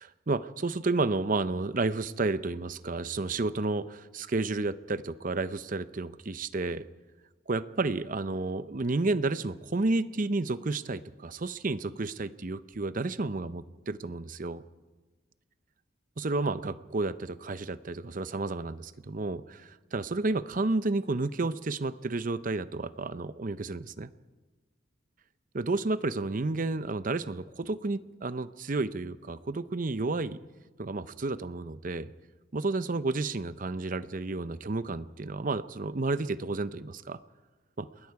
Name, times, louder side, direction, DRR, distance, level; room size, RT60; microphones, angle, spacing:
voice 1, 0.0-6.8 7.5-14.6 16.2-24.1 25.5-30.4 30.8-32.1 32.5-37.2 37.8-37.9, right 3 dB, 40° right, 13 dB, 0.6 m, -31 dB
28.0 x 20.5 x 4.8 m, 1.3 s
head